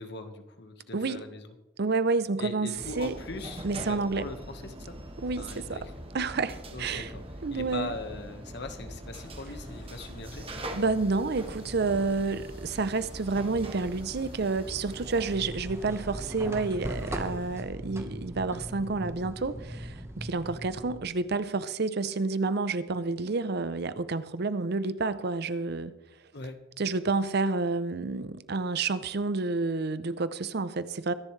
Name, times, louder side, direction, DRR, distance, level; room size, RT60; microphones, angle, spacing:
voice 1, 0.0-1.5 2.4-5.0 5.4-5.9 6.7-7.2 7.5-10.5 26.3-26.6, left 2 dB, 60° left, 1.5 m, -40 dB
voice 2, 1.8-3.2 3.6-4.3 5.2-5.8 6.1-7.1 7.4-7.9 10.7-25.9 26.8-31.1, right 3 dB, 55° right, 0.7 m, -29 dB
sound 1, 2.7-15.4, right 1 dB, 30° right, 1.5 m, -42 dB
sound 2, 9.1-17.6, left 3 dB, 80° left, 4.7 m, -57 dB
sound 3, 15.2-21.0, equal, 15° right, 1.2 m, -39 dB
23.5 x 10.5 x 3.3 m
head